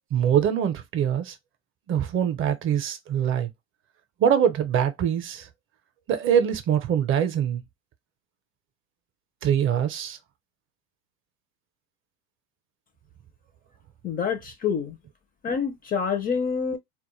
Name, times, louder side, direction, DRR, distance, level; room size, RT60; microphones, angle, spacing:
voice 1, 0.1-1.3 1.9-3.5 4.2-5.5 6.1-7.6 9.4-10.2, right 9 dB, 35° right, 0.5 m, -23 dB
voice 2, 14.0-15.0 15.4-16.8, left 6 dB, 25° left, 0.4 m, -27 dB
2.2 x 2.1 x 3.0 m
hypercardioid pair, 95°, 34 cm